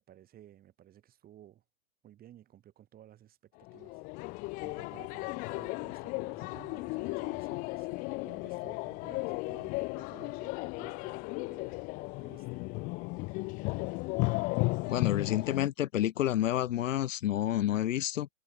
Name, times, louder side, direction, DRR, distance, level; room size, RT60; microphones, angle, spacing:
voice 1, 0.1-1.6 2.0-4.0 4.6-11.2 11.5-11.8 12.2-12.6, right 12 dB, 20° right, 3.4 m, -56 dB
sound 1, 3.7-15.7, left 26 dB, 20° left, 0.6 m, -35 dB
voice 2, 14.9-18.3, left 12 dB, 60° left, 0.8 m, -29 dB
hypercardioid pair, 130°, 43 cm